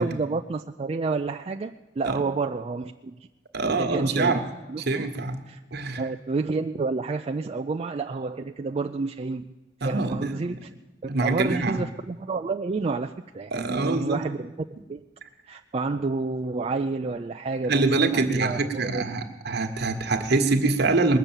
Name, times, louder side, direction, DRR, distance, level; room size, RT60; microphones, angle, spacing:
voice 1, 0.0-3.3 3.6-4.4 4.7-5.1 5.5-5.6 6.0-9.5 9.8-10.7 11.0-14.5 14.9-15.0 15.4-19.1, right 3 dB, 35° right, 6 dB, 0.4 m, -29 dB
voice 2, 3.5-4.4 4.9-5.4 5.7-6.0 9.8-10.3 11.1-11.8 13.5-14.2 17.7-21.2, right 3 dB, 60° right, 6 dB, 1.3 m, -24 dB
20.5 x 6.8 x 8.9 m, 1.1 s
head